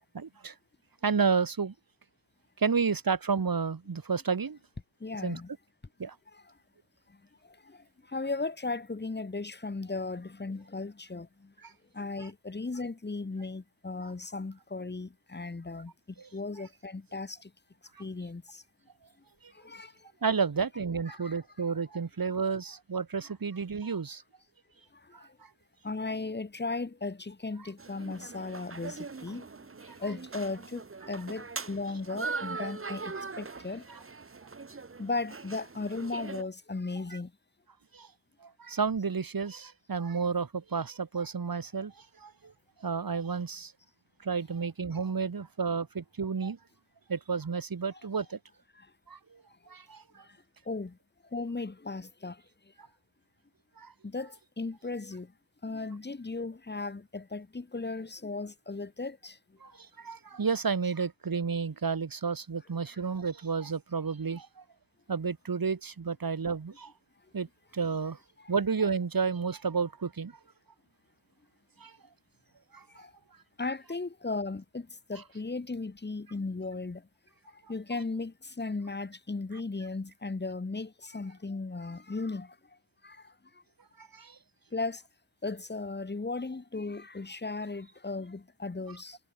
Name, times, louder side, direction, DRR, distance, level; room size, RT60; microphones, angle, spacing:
voice 1, 0.1-0.5 1.0-1.7 2.6-4.6 5.2-5.4 6.0-6.2 11.6-11.7 16.2-16.3 19.4-19.5 20.2-24.2 25.1-25.5 33.9-34.0 37.1-37.2 37.9-38.1 38.4-42.5 42.8-43.7 44.2-46.6 47.1-48.4 49.1-50.2 53.8-53.9 59.6-64.6 65.1-66.9 67.3-67.5 67.7-68.2 68.5-70.4 71.8-72.0 72.7-73.0 84.0-84.4, right 5 dB, 55° right, 1.5 m, -31 dB
voice 2, 5.0-5.5 6.3-6.4 7.7-7.8 8.1-11.3 11.9-15.9 16.3-17.5 18.0-18.6 19.6-19.9 21.1-21.4 25.8-29.4 30.0-33.8 35.0-37.3 50.7-51.0 51.3-52.4 54.0-55.3 55.6-59.4 68.4-68.5 73.0-73.1 73.6-77.0 77.7-82.5 83.0-83.2 84.7-85.0 85.4-89.2, left 3 dB, 25° left, 1.0 m, -36 dB
sound 1, 27.8-36.4, right 4 dB, 30° right, 1.0 m, -41 dB
wide cardioid pair, 60°, 42 cm